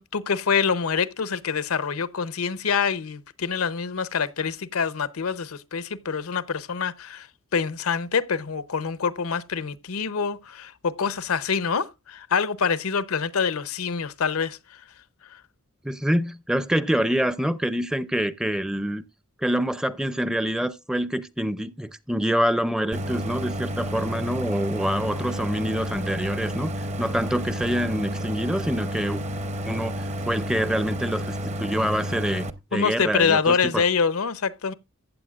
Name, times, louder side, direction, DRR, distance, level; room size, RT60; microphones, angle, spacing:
voice 1, 0.0-7.3 7.5-14.8 15.3-15.4 32.7-34.7, left 6 dB, 85° left, 0.7 m, -26 dB
voice 2, 15.8-19.0 19.4-26.7 27.0-29.2 29.6-29.9 30.3-33.8, equal, 5° right, 0.5 m, -26 dB
Idling, 22.9-32.5, equal, 35° right, 0.7 m, -31 dB
15.0 x 8.7 x 2.4 m
head